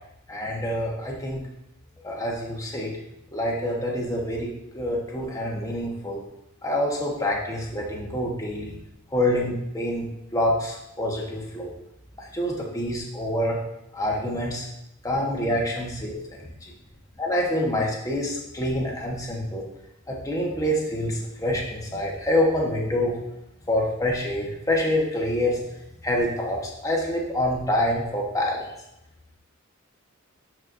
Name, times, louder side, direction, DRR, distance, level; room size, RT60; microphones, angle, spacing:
voice 1, 0.3-1.4 2.0-2.9 3.3-6.2 6.6-8.8 9.1-11.7 12.2-13.6 13.9-14.7 15.0-16.7 17.2-19.6 20.1-23.2 23.6-25.6 26.0-28.7, left 1 dB, 15° left, -2 dB, 1.3 m, -26 dB
12.0 x 4.5 x 2.7 m, 0.85 s
head